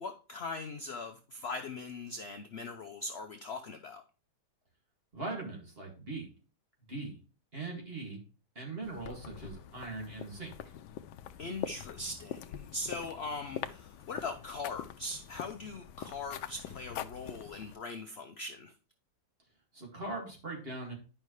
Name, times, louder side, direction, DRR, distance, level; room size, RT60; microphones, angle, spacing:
voice 1, 0.0-4.0 11.4-18.7, left 3 dB, 60° left, 6 dB, 0.7 m, -40 dB
voice 2, 5.1-6.3 6.9-7.2 7.5-8.2 8.6-10.6 19.7-20.9, right 2 dB, 35° right, -1 dB, 2.4 m, -40 dB
sound 1, 8.8-17.8, left 10 dB, 85° left, 1.2 m, -44 dB
10.5 x 5.4 x 3.2 m, 0.34 s
omnidirectional pair, 1.8 m